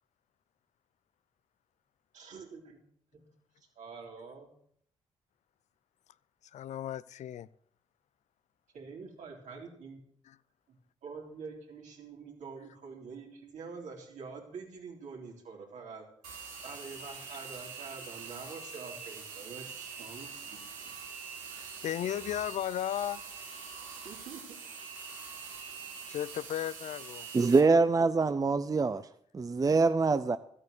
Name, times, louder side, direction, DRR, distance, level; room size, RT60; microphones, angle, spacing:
voice 1, 2.1-2.8 3.1-3.3 3.6-4.5 8.7-10.0 10.7-10.8 11.0-16.1 16.6-20.9 24.0-24.6, right 5 dB, 70° right, 3.6 m, -46 dB
voice 2, 6.5-7.5 21.5-23.2 26.1-27.3, left 11 dB, 65° left, 0.5 m, -35 dB
sound 1, 16.2-27.6, right 5 dB, 90° right, 2.6 m, -44 dB
voice 3, 27.3-29.0 29.3-30.4, right 4 dB, 30° right, 0.6 m, -24 dB
13.0 x 8.7 x 6.7 m
supercardioid pair, 50°, 13 cm